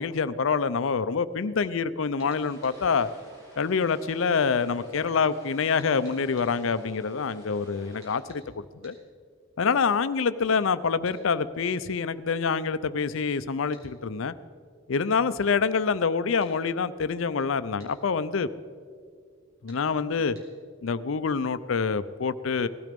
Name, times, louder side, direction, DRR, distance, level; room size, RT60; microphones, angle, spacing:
voice 1, 0.0-3.1 3.6-8.9 9.6-14.3 14.9-18.5 19.6-20.4 20.8-22.7, left 5 dB, 75° left, 14 dB, 0.5 m, -26 dB
sound 1, 2.2-2.8 5.8-6.5 8.0-8.4 8.8-9.0 11.0-11.2 13.7-13.9 16.4-16.6 17.8-18.0 19.7-19.8 20.3-20.5, right 1 dB, 70° right, 5.2 m, -55 dB
sound 2, 2.4-8.2, equal, 20° right, 5.3 m, -51 dB
18.0 x 12.5 x 5.2 m, 2.1 s
head